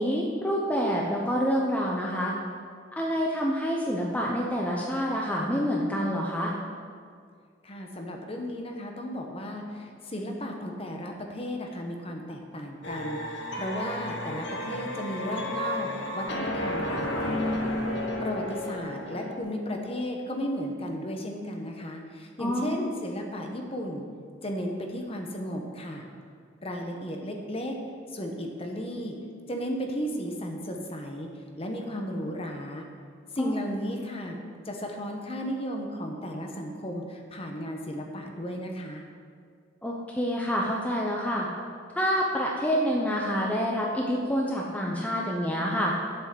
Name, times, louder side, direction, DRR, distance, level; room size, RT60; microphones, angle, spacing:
voice 1, 0.0-2.3 3.0-6.5 22.4-22.8 33.4-33.6 39.8-41.5 42.0-45.9, equal, 10° left, -2 dB, 0.7 m, -27 dB
voice 2, 7.6-17.7 18.2-24.0 24.4-26.1 26.6-27.8 28.1-29.1 29.5-31.3 31.6-32.9 33.3-34.4 34.6-39.0, equal, 30° left, 2 dB, 1.0 m, -34 dB
sound 1, 12.8-19.4, left 1 dB, 65° left, 1.2 m, -32 dB
7.9 x 6.2 x 7.7 m, 2.1 s
head